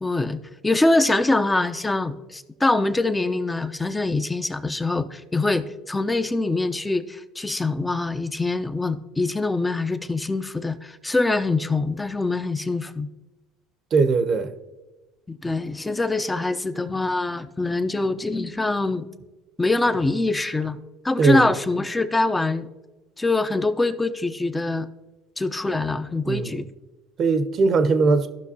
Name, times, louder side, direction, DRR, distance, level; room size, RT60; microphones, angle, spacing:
voice 1, 0.0-13.1 15.3-19.1 19.6-22.7 23.2-24.9 25.4-26.7, left 2 dB, 15° left, 0.6 m, -24 dB
voice 2, 13.9-14.5 21.2-21.5 26.3-26.6 27.2-28.3, right 4 dB, 45° right, 0.8 m, -20 dB
14.5 x 6.0 x 2.8 m
hypercardioid pair, 65°, 0 cm